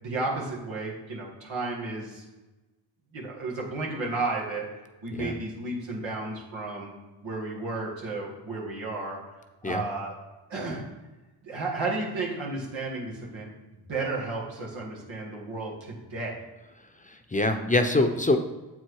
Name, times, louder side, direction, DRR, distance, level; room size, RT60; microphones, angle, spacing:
voice 1, 0.0-2.2 3.1-4.7 5.0-6.9 7.2-9.2 9.6-10.1 10.5-10.8 11.4-13.5 13.9-16.4, right 3 dB, 90° right, -3 dB, 1.8 m, -33 dB
voice 2, 17.0-18.4, left 2 dB, 15° left, 6 dB, 0.7 m, -24 dB
7.6 x 4.5 x 4.7 m, 1.1 s
cardioid pair, 45°, 45 cm